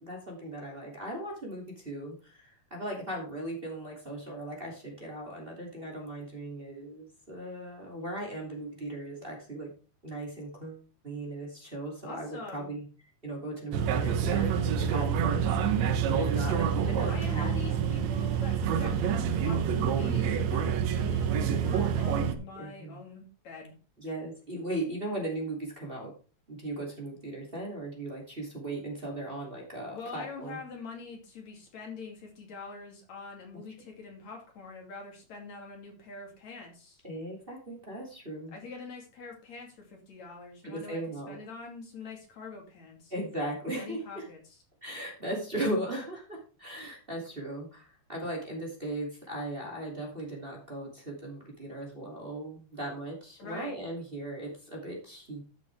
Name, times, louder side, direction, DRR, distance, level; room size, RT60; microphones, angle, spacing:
voice 1, 0.0-9.7 10.0-12.8 13.2-18.0 22.2-22.3 22.6-23.0 24.0-26.1 26.5-30.6 37.0-38.6 40.6-41.4 43.1-44.2 44.8-55.4, right 1 dB, 20° right, 0 dB, 2.8 m, -38 dB
voice 2, 12.0-12.7 17.1-23.8 29.9-37.0 38.5-43.1 43.8-44.6 53.4-53.8, left 4 dB, 65° left, 1 dB, 4.0 m, -44 dB
sound 1, 13.7-22.3, right 8 dB, 70° right, 2.2 m, -27 dB
13.0 x 7.7 x 3.5 m, 0.36 s
omnidirectional pair, 3.4 m